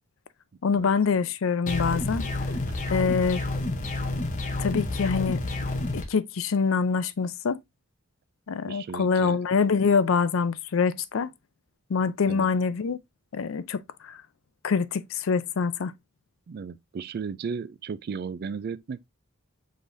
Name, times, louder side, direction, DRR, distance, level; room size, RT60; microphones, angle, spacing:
voice 1, 0.6-2.3 2.9-3.4 4.6-5.4 5.9-7.6 8.5-11.3 11.9-13.0 13.3-14.2 14.6-15.9, left 5 dB, 70° left, 0.4 m, -25 dB
sound 1, 1.7-6.0, left 2 dB, 35° left, 0.8 m, -29 dB
voice 2, 8.7-9.5 12.3-12.5 16.5-19.1, right 5 dB, 45° right, 0.3 m, -35 dB
5.0 x 3.8 x 2.5 m
head